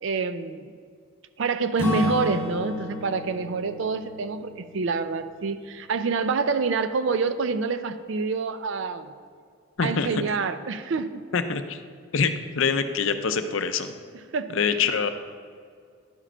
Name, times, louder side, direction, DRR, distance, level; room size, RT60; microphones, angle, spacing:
voice 1, 0.0-0.8 1.4-9.1 9.8-11.2 14.3-14.5, right 4 dB, 60° right, 11 dB, 0.4 m, -27 dB
Acoustic guitar / Strum, 1.8-5.7, left 1 dB, 10° left, 0.9 m, -33 dB
voice 2, 9.8-10.1 11.3-11.8 12.1-13.9 14.5-15.1, left 5 dB, 65° left, 9 dB, 0.5 m, -25 dB
11.0 x 4.9 x 4.4 m, 2.1 s
head